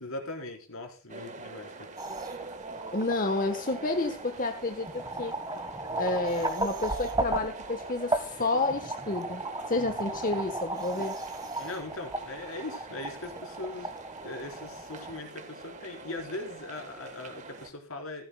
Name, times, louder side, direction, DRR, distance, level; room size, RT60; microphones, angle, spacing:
voice 1, 0.0-1.7 11.6-13.9 14.2-18.2, left 2 dB, 80° left, 2 dB, 4.2 m, -40 dB
sound 1, 1.1-17.7, right 3 dB, 35° right, 1.3 m, -45 dB
sound 2, 2.0-15.2, right 2 dB, 20° right, 1.3 m, -36 dB
voice 2, 2.9-5.3 6.0-11.2, left 2 dB, 40° left, 6 dB, 1.1 m, -30 dB
15.5 x 15.0 x 2.2 m, 0.35 s
head